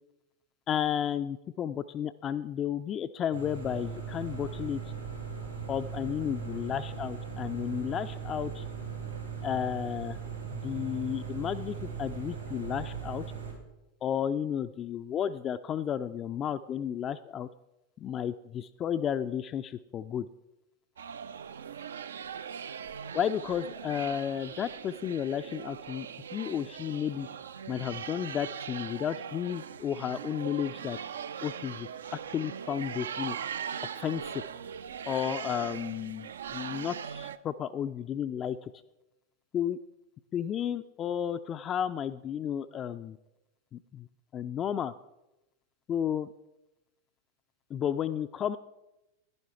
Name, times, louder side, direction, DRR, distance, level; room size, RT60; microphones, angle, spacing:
voice 1, 0.7-4.8 5.7-8.6 9.4-10.2 10.5-13.2 14.0-17.5 18.0-20.3 23.1-26.1 26.3-27.3 27.7-31.0 31.4-31.9 32.3-33.4 33.9-34.4 35.0-38.7 39.5-39.8 40.3-43.2 43.7-44.1 44.3-44.9 45.9-46.3 47.7-48.6, left 9 dB, 30° left, 10 dB, 0.3 m, -32 dB
sound 1, 3.3-13.5, right 7 dB, 90° right, 4.2 m, -39 dB
sound 2, 21.0-37.4, right 8 dB, 65° right, 0.3 m, -40 dB
10.5 x 10.5 x 4.3 m, 0.94 s
figure-of-eight pair, 90°, 0 cm